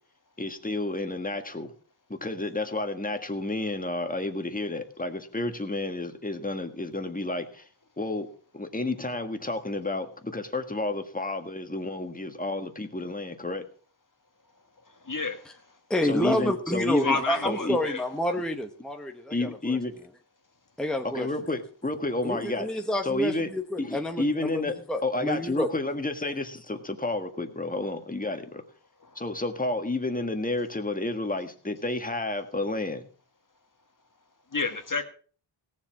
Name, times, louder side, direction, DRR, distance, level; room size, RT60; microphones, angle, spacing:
voice 1, 0.4-1.7 2.1-7.7 8.0-8.3 8.5-13.6 16.0-17.2 17.4-17.8 19.3-19.9 21.0-22.7 23.0-23.5 23.8-24.8 25.0-28.6 29.2-33.1, left 2 dB, 15° left, 1.7 m, -30 dB
voice 2, 15.1-15.4 17.0-18.0 34.5-35.0, left 4 dB, 40° left, 1.7 m, -29 dB
voice 3, 15.9-19.8 20.8-21.3 22.2-24.6 24.9-25.7, left 1 dB, ahead, 1.2 m, -29 dB
17.5 x 7.5 x 6.0 m
wide cardioid pair, 100°, 48 cm